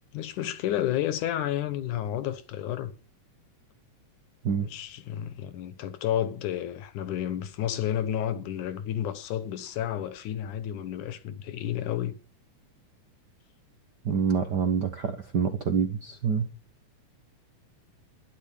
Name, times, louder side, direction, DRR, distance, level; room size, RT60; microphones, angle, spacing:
voice 1, 0.1-2.9 4.6-12.2, left 11 dB, 75° left, 2.5 m, -31 dB
voice 2, 14.0-16.5, right 6 dB, 60° right, 1.1 m, -26 dB
12.0 x 10.5 x 7.2 m
omnidirectional pair, 3.6 m